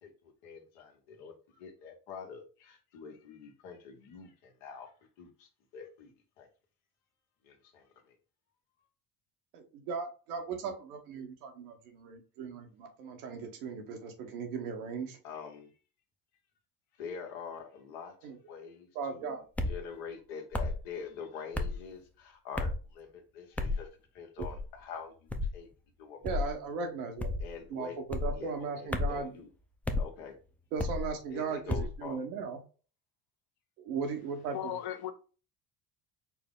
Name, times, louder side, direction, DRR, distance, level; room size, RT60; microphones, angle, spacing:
voice 1, 0.0-4.9 5.2-6.1 6.4-6.5 7.4-8.2 15.2-15.7 17.0-23.9 24.1-25.7 26.0-26.4 27.4-28.0 28.3-29.5 29.9-30.3 31.3-32.2, left 6 dB, 80° left, 1.2 m, -45 dB
voice 2, 9.5-15.2 18.2-18.4 18.9-19.4 26.2-27.3 27.7-29.3 30.7-32.6 33.8-34.6, right 5 dB, 90° right, 1.0 m, -37 dB
sound 1, 19.6-19.8 20.5-20.8 21.5-21.8 22.5-22.8 23.6-23.8 24.4-24.7 25.3-25.6 26.2-26.5 27.2-27.5 28.1-28.4 28.9-29.2 29.8-30.1 30.8-31.1 31.7-32.0, left 2 dB, 5° left, 0.4 m, -32 dB
voice 3, 34.5-35.1, left 12 dB, 60° left, 0.8 m, -36 dB
4.6 x 2.0 x 3.6 m
supercardioid pair, 85°, 42 cm